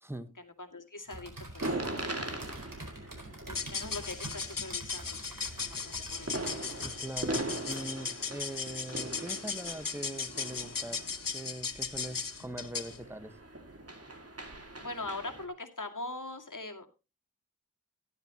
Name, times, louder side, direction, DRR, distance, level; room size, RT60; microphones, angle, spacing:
voice 1, 0.4-1.8 3.5-6.4 14.8-16.9, left 2 dB, 70° left, 2.2 m, -42 dB
sound 1, 1.1-8.2, right 2 dB, 80° right, 4.4 m, -46 dB
sound 2, 1.6-15.5, right 2 dB, 50° right, 2.3 m, -41 dB
sound 3, 3.5-13.0, left 5 dB, 90° left, 0.9 m, -37 dB
voice 2, 6.8-11.0 11.3-13.4, right 1 dB, 5° right, 1.4 m, -42 dB
14.5 x 11.5 x 2.9 m
wide cardioid pair, 45°, 32 cm